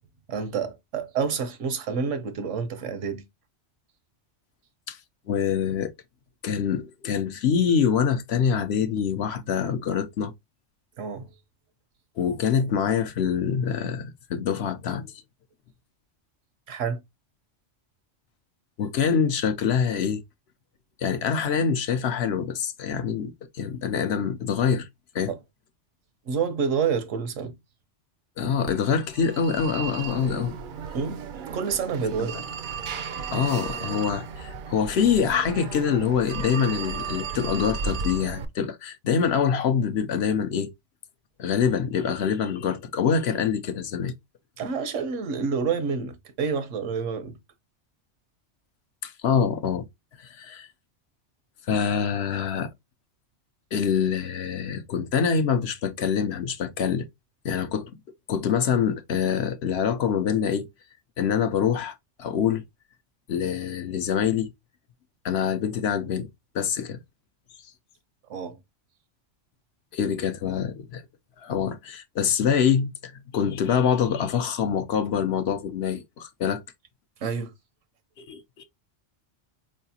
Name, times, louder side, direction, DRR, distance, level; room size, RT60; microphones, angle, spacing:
voice 1, 0.3-3.2 11.0-11.3 16.7-17.0 25.3-25.4 26.3-27.6 30.9-31.3 31.5-32.4 44.6-47.4 68.3-68.6 77.2-77.5, right 6 dB, 85° right, 1.2 m, -28 dB
voice 2, 5.3-5.9 6.4-10.3 12.2-15.1 18.8-20.2 21.0-24.9 25.1-25.3 28.4-30.6 32.2-32.3 33.3-40.7 41.4-44.1 49.0-49.9 50.2-50.7 51.7-52.7 53.7-57.1 57.4-57.9 58.3-60.7 61.2-62.6 63.3-64.5 65.2-66.3 66.5-67.0 69.9-71.0 71.4-76.6 78.2-78.6, left 7 dB, 65° left, 0.8 m, -25 dB
Telephone, 28.7-38.5, right 5 dB, 60° right, 0.5 m, -35 dB
4.7 x 3.2 x 2.7 m
omnidirectional pair, 1.2 m